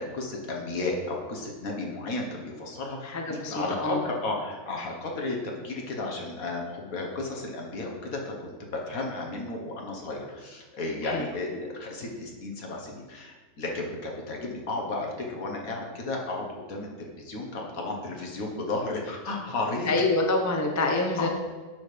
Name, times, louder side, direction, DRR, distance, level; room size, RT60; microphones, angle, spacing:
voice 1, 0.0-19.9 21.2-21.3, left 2 dB, 65° left, 0 dB, 1.9 m, -33 dB
voice 2, 3.0-4.0 11.0-11.2 19.9-21.3, left 2 dB, 15° left, 2 dB, 0.6 m, -26 dB
8.2 x 6.4 x 5.1 m, 1.4 s
omnidirectional pair, 1.6 m